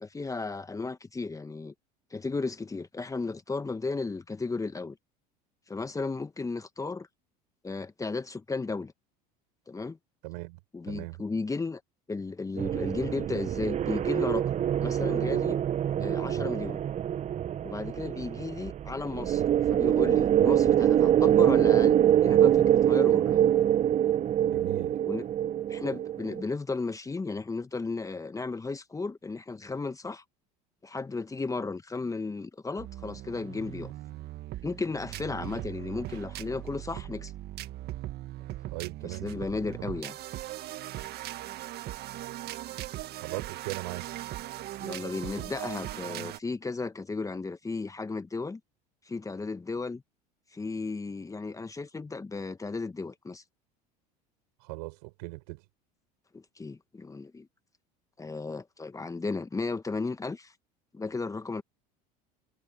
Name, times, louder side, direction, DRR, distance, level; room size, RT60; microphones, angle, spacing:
voice 1, 0.0-1.7 2.1-5.0 5.7-7.1 7.6-8.9 9.7-10.0 10.7-11.8 12.1-14.5 14.8-15.6 16.0-16.8 17.6-19.4 19.7-23.5 25.1-25.3 25.7-30.2 30.8-33.9 34.6-37.3 39.0-40.2 44.8-48.6 49.1-50.0 50.5-53.4 56.3-57.5 58.2-60.5 60.9-61.6, left 3 dB, 15° left, 1.4 m, -34 dB
voice 2, 10.2-10.6 10.9-11.2 24.4-25.0 38.7-39.3 43.2-44.1 54.6-55.6, right 28 dB, 75° right, 6.9 m, -38 dB
sound 1, 12.6-26.4, right 10 dB, 35° right, 0.7 m, -24 dB
sound 2, 32.8-46.4, right 14 dB, 55° right, 1.8 m, -39 dB
hypercardioid pair, 85°, 20 cm